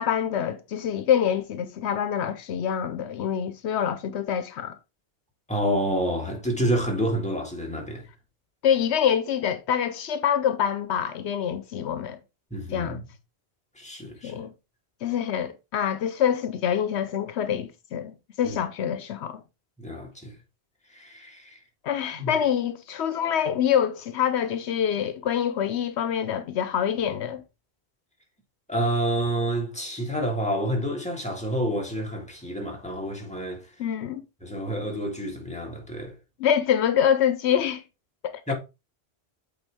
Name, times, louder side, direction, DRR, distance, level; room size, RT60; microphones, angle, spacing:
voice 1, 0.0-4.8 8.6-12.2 12.7-13.0 14.2-14.5 15.0-19.4 21.8-27.4 33.8-34.2 36.4-37.8 38.2-38.5, left 9 dB, 80° left, 0.9 m, -26 dB
voice 2, 5.5-8.0 12.5-13.0 13.8-14.3 18.4-18.6 19.8-20.3 20.9-21.6 22.1-22.3 28.7-33.7 34.4-36.1 38.5-38.6, right 1 dB, 5° left, 1.8 m, -28 dB
8.0 x 4.0 x 3.4 m
omnidirectional pair, 1.1 m